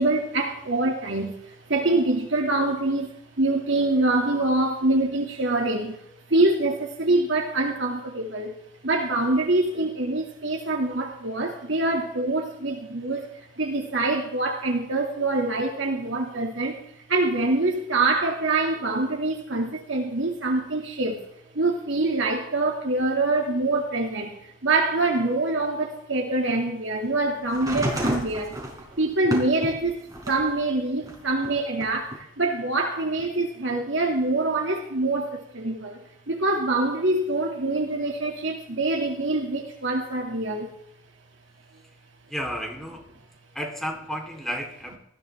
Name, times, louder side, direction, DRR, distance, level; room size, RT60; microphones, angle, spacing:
voice 1, 0.0-3.1 3.4-8.5 8.8-13.3 13.6-16.8 17.1-21.2 21.5-28.6 29.0-36.0 36.3-40.7, right 2 dB, 65° right, 2.5 m, -25 dB
sound 1, 27.5-30.5 31.0-32.2 33.2-33.3, right 1 dB, 20° right, 4.6 m, -30 dB
voice 2, 42.3-43.0 43.6-45.0, equal, ahead, 3.6 m, -32 dB
19.5 x 15.5 x 3.6 m
head